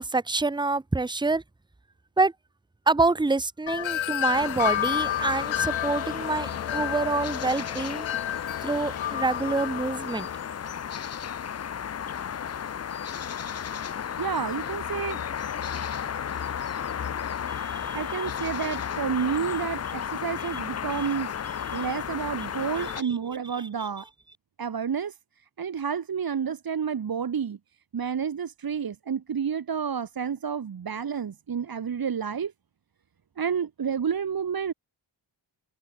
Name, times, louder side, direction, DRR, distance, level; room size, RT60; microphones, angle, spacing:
voice 1, 0.0-1.4 2.2-2.3 2.9-8.1 8.6-10.3 17.5-18.2 21.0-21.1 21.7-21.9 22.8-23.2 23.8-23.9, right 3 dB, 10° right, 0.8 m, -27 dB
Wind chime, 3.7-10.4, left 12 dB, 85° left, 0.8 m, -31 dB
sound 1, 4.3-23.0, left 8 dB, 35° left, 0.5 m, -33 dB
voice 2, 14.2-15.2 17.9-21.3 21.7-24.1 24.6-25.2 25.6-27.6 27.9-32.5 33.4-34.7, right 7 dB, 50° right, 1.2 m, -30 dB
cardioid pair, 65°, 45 cm